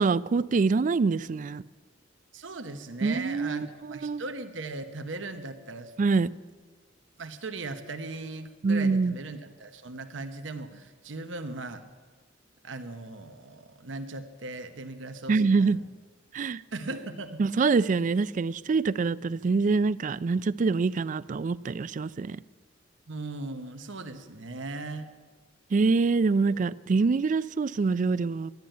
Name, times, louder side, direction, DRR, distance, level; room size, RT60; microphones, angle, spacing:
voice 1, 0.0-1.6 3.0-4.2 6.0-6.3 8.6-9.1 15.3-15.8 16.3-16.6 17.4-22.4 25.7-28.5, right 4 dB, 40° right, 19 dB, 0.3 m, -25 dB
voice 2, 2.3-5.9 7.2-11.8 12.6-15.9 16.7-17.4 23.1-25.1, right 3 dB, 80° right, 7 dB, 1.0 m, -38 dB
12.0 x 11.0 x 9.0 m, 1.4 s
head